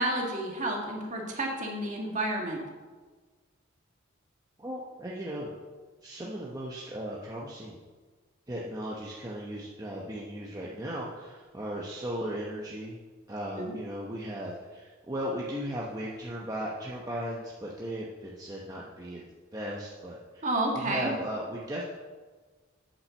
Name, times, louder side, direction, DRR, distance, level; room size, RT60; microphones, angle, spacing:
voice 1, 0.0-2.6 13.6-13.7 20.4-21.1, right 1 dB, 35° right, 0 dB, 1.8 m, -30 dB
voice 2, 4.6-5.5 6.0-7.8 8.5-13.0 13.3-19.2 19.5-21.8, equal, 20° right, -4 dB, 0.9 m, -37 dB
8.5 x 5.8 x 6.8 m, 1.4 s
head